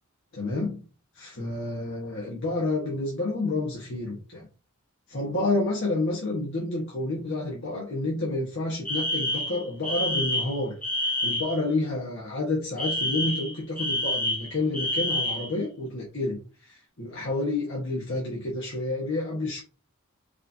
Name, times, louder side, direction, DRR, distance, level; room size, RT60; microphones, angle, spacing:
voice 1, 0.3-0.8 1.1-4.5 5.1-19.6, left 2 dB, 55° left, -5 dB, 1.5 m, -29 dB
Alarm, 8.8-11.6 12.8-15.5, left 1 dB, 5° left, 1.0 m, -28 dB
4.8 x 3.2 x 2.8 m, 0.33 s
head